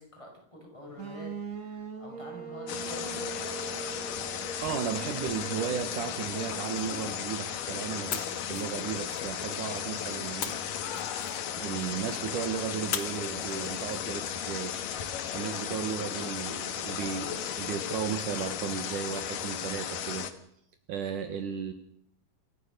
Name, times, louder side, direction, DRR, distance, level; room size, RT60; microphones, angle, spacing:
voice 1, 0.0-3.3, left 1 dB, 10° left, 0 dB, 6.5 m, -47 dB
sound 1, 1.0-6.8, right 5 dB, 35° right, 1.5 m, -42 dB
sound 2, 2.7-20.3, left 9 dB, 70° left, 3.0 m, -35 dB
voice 2, 4.6-10.6 11.6-20.3 20.9-21.7, right 8 dB, 65° right, 7 dB, 2.8 m, -35 dB
sound 3, 5.3-7.6 8.1-9.7 10.4-11.8 12.9-14.3, left 8 dB, 50° left, 2.0 m, -41 dB
27.5 x 14.0 x 6.8 m, 0.71 s
omnidirectional pair, 4.1 m